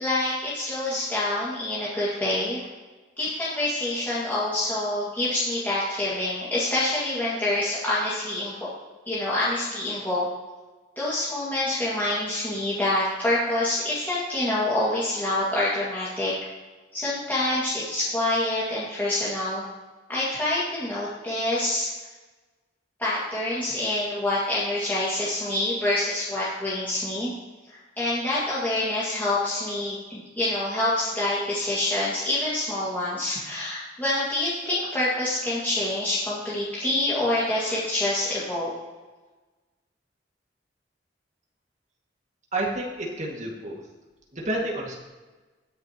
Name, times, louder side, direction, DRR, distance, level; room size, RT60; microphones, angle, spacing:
voice 1, 0.0-2.6 3.2-8.7 9.1-10.3 11.0-16.3 16.9-19.6 20.1-21.9 23.0-27.3 27.7-38.7, left 1 dB, 10° left, -9 dB, 2.1 m, -26 dB
voice 2, 42.5-43.8 44.3-45.0, right 1 dB, 40° right, -2 dB, 2.1 m, -29 dB
20.5 x 6.9 x 3.0 m, 1.3 s
head